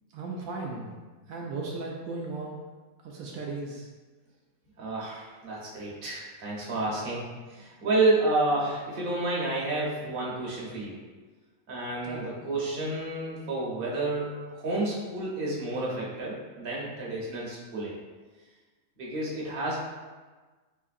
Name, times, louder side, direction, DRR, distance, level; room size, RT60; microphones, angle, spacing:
voice 1, 0.1-0.9 1.3-2.6 3.0-3.9 12.0-12.3, right 3 dB, 80° right, -2 dB, 1.0 m, -36 dB
voice 2, 4.8-7.2 7.5-11.0 11.7-17.9 19.0-19.8, right 2 dB, 45° right, -6 dB, 1.0 m, -30 dB
3.6 x 3.2 x 2.5 m, 1.3 s
omnidirectional pair, 1.4 m